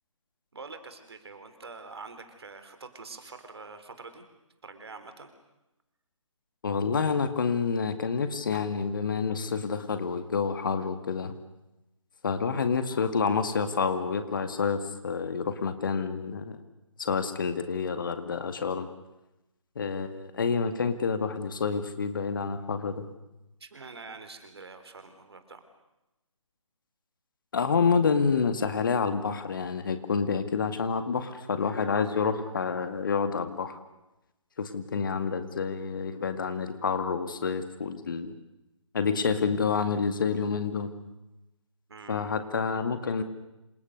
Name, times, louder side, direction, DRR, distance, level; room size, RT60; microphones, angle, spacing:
voice 1, 0.5-4.2 4.6-5.3 23.6-25.6 41.9-42.3, right 4 dB, 50° right, 9 dB, 4.0 m, -45 dB
voice 2, 6.6-11.4 12.2-16.6 17.0-18.9 19.8-23.0 27.5-33.8 34.6-38.3 38.9-40.9 42.1-43.2, left 5 dB, 40° left, 9 dB, 2.1 m, -28 dB
27.5 x 27.0 x 6.6 m, 0.94 s
figure-of-eight pair, 145°, 17 cm